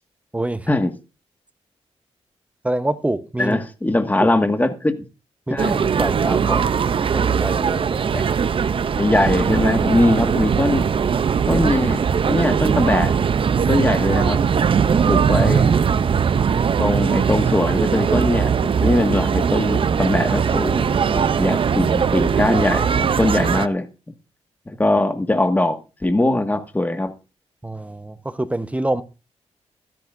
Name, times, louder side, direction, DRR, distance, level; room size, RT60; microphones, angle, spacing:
voice 1, 0.3-0.7 2.6-3.6 4.2-4.3 5.5-5.7 6.0-8.2 27.6-29.0, right 1 dB, 10° right, 1.0 m, -26 dB
voice 2, 3.4-4.9 5.5-5.8 6.5-6.6 8.1-8.2 9.0-10.9 11.5-13.1 13.7-14.4 15.1-15.8 16.8-23.9 24.7-27.1, left 2 dB, 15° left, 1.7 m, -21 dB
sound 1, 5.6-23.7, right 7 dB, 50° right, 0.6 m, -20 dB
15.0 x 13.0 x 2.6 m
cardioid pair, 90°, 11 cm